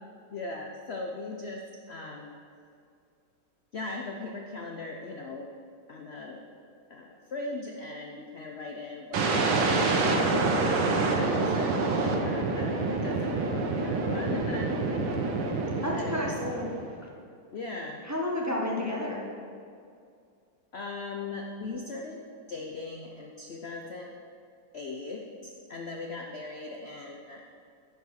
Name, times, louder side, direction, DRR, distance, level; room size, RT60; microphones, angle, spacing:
voice 1, 0.3-2.4 3.7-5.5 5.9-6.5 6.9-9.3 10.1-14.9 15.9-16.3 17.5-18.0 18.8-18.9 20.7-22.2 22.5-24.1 24.7-27.4, left 3 dB, 90° left, 0 dB, 0.5 m, -39 dB
sound 1, 9.1-17.0, right 3 dB, 85° right, 1.8 m, -27 dB
voice 2, 12.5-13.1 15.8-16.7 18.0-19.3, left 1 dB, 25° right, -2 dB, 0.3 m, -32 dB
9.9 x 5.2 x 6.4 m, 2.4 s
omnidirectional pair, 2.1 m